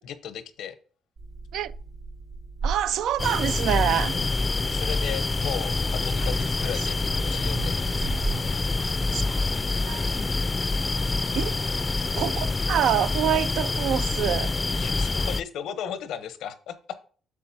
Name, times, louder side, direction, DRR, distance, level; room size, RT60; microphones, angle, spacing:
voice 1, 0.0-0.7 4.1-4.3 4.7-5.8 6.0-8.1 14.7-16.7, left 9 dB, 85° left, 0.9 m, -36 dB
sound 1, 1.2-9.2, right 4 dB, 60° right, 2.1 m, -37 dB
voice 2, 2.6-4.2 6.2-6.3 9.1-9.5 9.8-10.1 11.3-11.6 12.1-14.6, right 10 dB, 80° right, 0.4 m, -26 dB
sound 2, 3.2-15.4, left 3 dB, 25° left, 0.4 m, -26 dB
8.3 x 6.6 x 2.8 m
cardioid pair, 90°, 0 cm